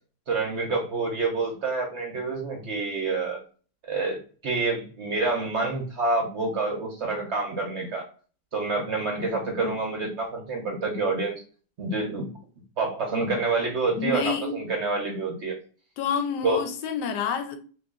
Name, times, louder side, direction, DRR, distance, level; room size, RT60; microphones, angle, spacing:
voice 1, 0.3-3.4 3.8-8.1 8.5-11.4 11.8-12.3 12.8-15.6 16.4-16.6, right 3 dB, 60° right, 0.8 m, -27 dB
voice 2, 14.0-14.6 16.0-17.6, left 6 dB, 80° left, 1.2 m, -28 dB
3.0 x 2.4 x 3.5 m
omnidirectional pair, 1.8 m